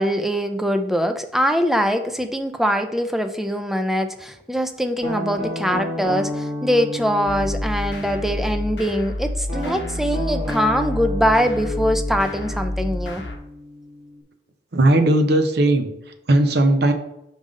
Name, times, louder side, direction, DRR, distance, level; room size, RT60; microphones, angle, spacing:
voice 1, 0.0-13.2, equal, ahead, 7 dB, 0.4 m, -22 dB
Guitar, 5.0-8.8 9.5-14.2, left 1 dB, 40° right, 1.4 m, -32 dB
sound 1, 7.3-13.4, left 1 dB, 75° left, 1.0 m, -29 dB
voice 2, 14.7-15.9 16.3-16.9, right 1 dB, 65° right, 7 dB, 0.7 m, -17 dB
5.4 x 3.7 x 5.1 m, 0.84 s
head